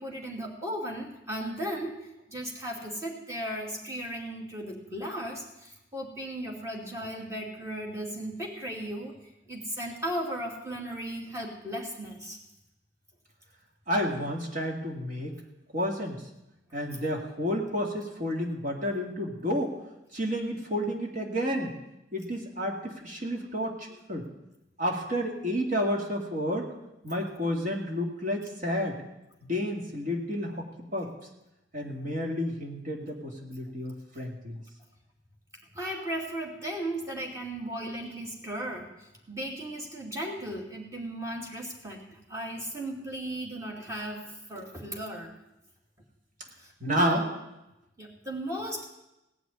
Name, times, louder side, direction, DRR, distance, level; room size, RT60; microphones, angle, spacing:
voice 1, 0.0-9.1 9.5-12.4 35.7-45.3 46.6-47.3 48.0-48.8, right 1 dB, 15° right, -1 dB, 2.7 m, -36 dB
voice 2, 13.9-15.3 15.7-16.2 16.7-19.7 20.1-21.7 22.1-24.3 24.8-26.7 27.0-29.0 29.4-30.7 30.9-31.1 31.7-34.6 46.8-47.2, equal, 45° right, 1 dB, 2.2 m, -30 dB
17.5 x 6.3 x 9.5 m, 0.93 s
head